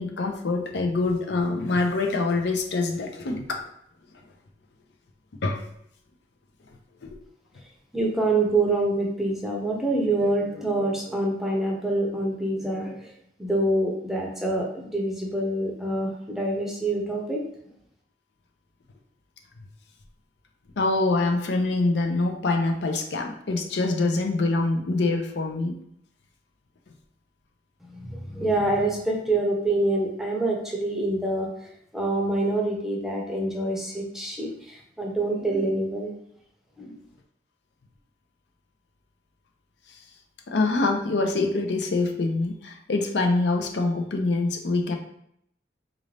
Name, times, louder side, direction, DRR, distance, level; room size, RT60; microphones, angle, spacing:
voice 1, 0.0-3.6 5.4-5.6 7.0-7.2 20.8-25.8 40.5-45.0, left 3 dB, 75° left, 3 dB, 0.5 m, -25 dB
voice 2, 7.9-13.1 13.4-17.4 27.8-36.1 36.8-37.0, right 2 dB, ahead, -1 dB, 0.6 m, -26 dB
4.0 x 2.5 x 3.2 m, 0.72 s
head